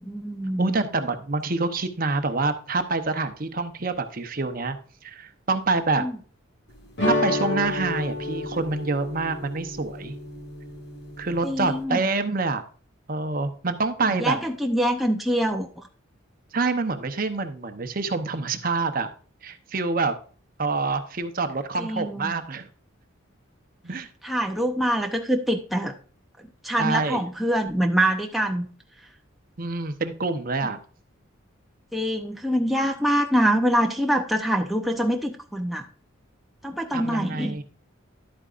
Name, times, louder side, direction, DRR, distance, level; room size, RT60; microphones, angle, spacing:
voice 1, 0.0-0.7 6.0-6.1 11.4-12.0 14.1-15.8 21.8-22.3 24.2-25.9 26.4-28.7 31.9-35.8 36.6-37.6, equal, ahead, 1 dB, 0.7 m, -25 dB
voice 2, 0.6-4.8 5.0-6.0 7.0-10.1 11.2-12.6 13.1-14.4 16.5-19.1 19.4-20.1 20.6-22.7 23.8-24.1 26.8-27.2 29.6-30.8 36.9-37.6, right 3 dB, 45° right, 8 dB, 0.8 m, -26 dB
sound 1, 7.0-11.8, left 2 dB, 55° left, 1.9 m, -30 dB
11.0 x 8.7 x 2.5 m, 0.40 s
head